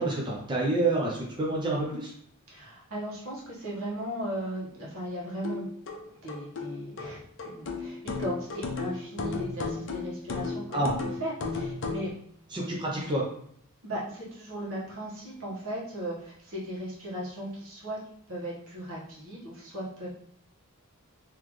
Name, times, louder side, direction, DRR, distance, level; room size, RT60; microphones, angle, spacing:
voice 1, 0.0-2.1 10.7-11.0 12.5-13.3, right 2 dB, 20° right, -4 dB, 0.6 m, -28 dB
voice 2, 2.5-5.7 6.2-10.8 11.2-12.1 13.8-18.0 18.3-20.1, equal, 65° right, -5 dB, 1.5 m, -37 dB
sound 1, 5.4-12.1, left 3 dB, 60° left, 0.6 m, -34 dB
3.9 x 3.0 x 3.2 m, 0.66 s
head